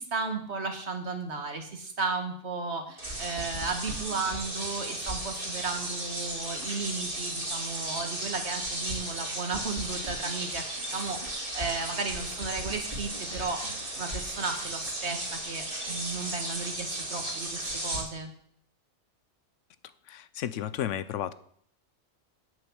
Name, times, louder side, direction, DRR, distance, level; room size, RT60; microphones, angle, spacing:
voice 1, 0.0-18.3, right 4 dB, 65° right, 5 dB, 1.9 m, -34 dB
sound 1, 3.0-18.0, right 1 dB, 45° right, 2.6 m, -35 dB
voice 2, 20.1-21.3, left 10 dB, 90° left, 15 dB, 1.0 m, -33 dB
8.7 x 7.9 x 7.2 m, 0.63 s
omnidirectional pair, 1.2 m